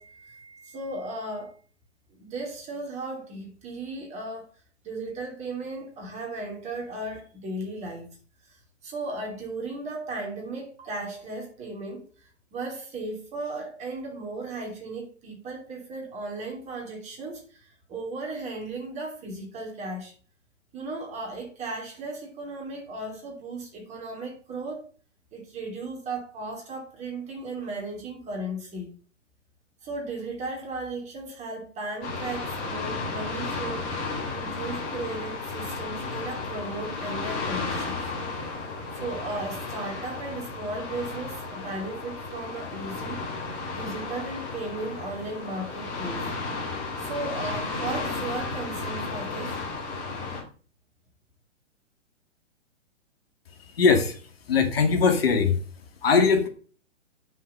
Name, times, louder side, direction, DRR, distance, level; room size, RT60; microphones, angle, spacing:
voice 1, 0.0-1.5 2.1-4.5 4.8-8.1 8.5-20.1 20.7-24.9 25.3-28.9 29.8-33.9 34.3-38.0 38.9-46.3 47.0-49.6, right 2 dB, 20° right, 3.2 m, -36 dB
sound 1, 32.0-50.4, left 3 dB, 30° left, 3.4 m, -33 dB
voice 2, 53.8-54.2 54.5-55.6 56.0-56.5, left 5 dB, 50° left, 2.1 m, -20 dB
9.6 x 6.5 x 5.6 m
figure-of-eight pair, 120°, 37 cm